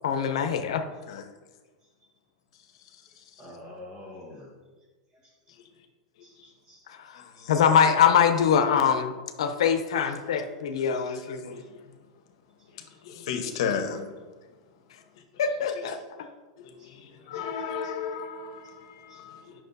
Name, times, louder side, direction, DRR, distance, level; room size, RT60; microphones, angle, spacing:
voice 1, 0.0-0.8 7.5-11.6 13.9-14.0 15.4-16.0, left 7 dB, 90° left, 7 dB, 0.7 m, -23 dB
voice 2, 3.4-4.5 5.2-5.3 6.2-6.8 7.4-7.5 11.1-11.2 15.7-16.0 16.3-16.5 16.8-17.5 17.8-18.0 19.1-19.2, left 1 dB, 25° right, -1 dB, 1.5 m, -48 dB
voice 3, 13.0-14.0 16.8-16.9 17.3-19.5, left 6 dB, 55° left, 5 dB, 1.0 m, -33 dB
9.1 x 6.0 x 2.7 m, 1.3 s
supercardioid pair, 170°, 3 cm